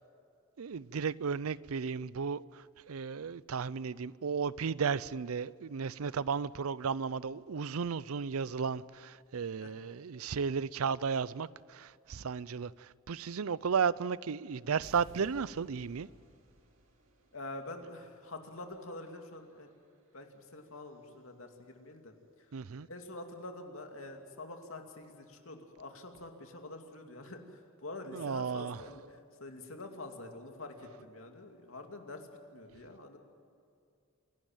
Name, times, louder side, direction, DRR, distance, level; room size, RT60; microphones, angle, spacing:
voice 1, 0.6-16.1 22.5-22.9 28.1-28.8, right 6 dB, 85° right, 0.5 m, -34 dB
sound 1, 14.8-21.0, right 1 dB, 65° right, 2.8 m, -60 dB
voice 2, 17.3-19.7 20.1-22.5 22.9-33.2, left 2 dB, 75° left, 2.5 m, -46 dB
26.5 x 12.0 x 9.1 m
head